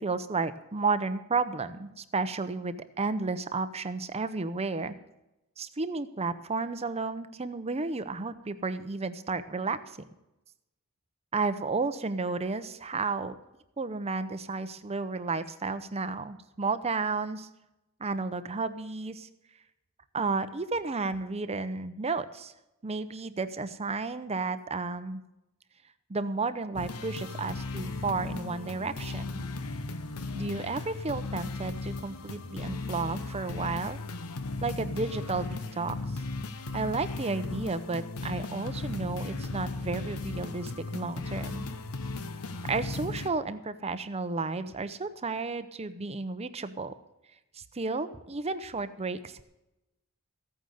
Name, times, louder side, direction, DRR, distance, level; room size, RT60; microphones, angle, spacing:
voice 1, 0.0-4.9 5.6-9.8 11.3-13.3 13.8-17.5 18.0-19.3 20.1-22.5 22.8-25.2 26.1-29.4 30.3-34.0 34.6-36.0 36.7-41.7 42.7-46.9 47.5-49.4, right 3 dB, 30° right, 11 dB, 0.7 m, -32 dB
sound 1, 26.7-43.3, left 3 dB, 85° left, 1.0 m, -36 dB
15.0 x 9.3 x 6.5 m, 0.93 s
head